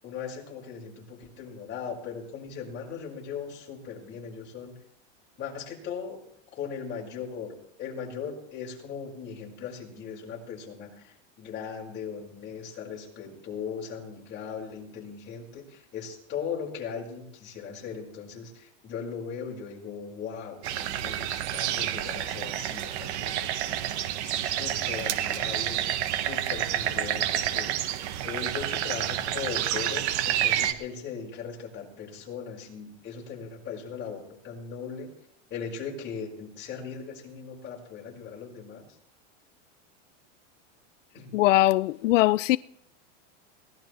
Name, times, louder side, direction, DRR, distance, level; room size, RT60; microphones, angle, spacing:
voice 1, 0.0-4.7 5.4-6.2 6.6-25.8 26.1-27.7 28.2-35.1 35.5-38.8 41.1-41.3, left 6 dB, 30° left, 5.6 m, -38 dB
sound 1, 20.6-30.7, right 12 dB, 65° right, 1.5 m, -29 dB
voice 2, 41.3-42.6, left 17 dB, 90° left, 0.5 m, -21 dB
22.0 x 18.5 x 3.3 m
supercardioid pair, 145°, 36 cm